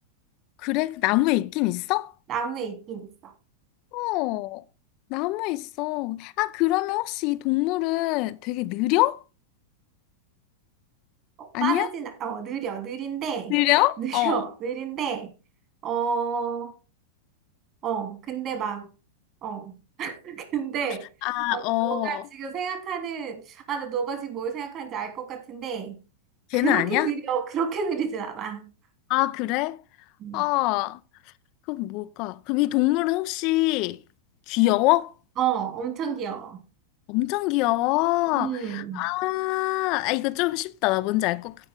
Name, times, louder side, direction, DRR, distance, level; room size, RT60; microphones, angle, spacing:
voice 1, 0.6-2.1 3.9-4.6 5.1-9.2 11.5-11.9 13.5-14.4 21.2-22.2 26.5-27.1 29.1-29.8 30.3-31.0 31.7-34.0 34.5-35.1 37.1-41.6, left 19 dB, 50° left, 0.5 m, -24 dB
voice 2, 2.3-3.3 11.4-13.6 14.0-15.3 15.8-16.7 17.8-18.9 19.4-21.0 21.5-26.0 26.5-28.6 30.2-30.4 35.4-36.6 38.3-39.0, right 7 dB, 40° right, 3.2 m, -30 dB
15.5 x 5.3 x 3.7 m
hypercardioid pair, 95°, 0 cm